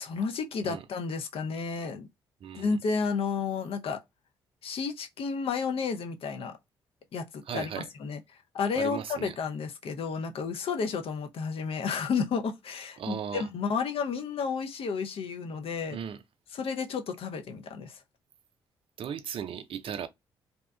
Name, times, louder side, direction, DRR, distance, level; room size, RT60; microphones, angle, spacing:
voice 1, 0.0-2.1 2.5-4.0 4.6-6.5 7.1-8.2 8.5-16.0 16.5-18.0, left 5 dB, 50° left, 0.6 m, -32 dB
voice 2, 2.4-2.7 7.5-7.9 8.7-9.3 13.0-13.5 15.9-16.2 19.0-20.1, right 8 dB, 50° right, 0.4 m, -36 dB
2.7 x 2.2 x 2.2 m
hypercardioid pair, 45°, 12 cm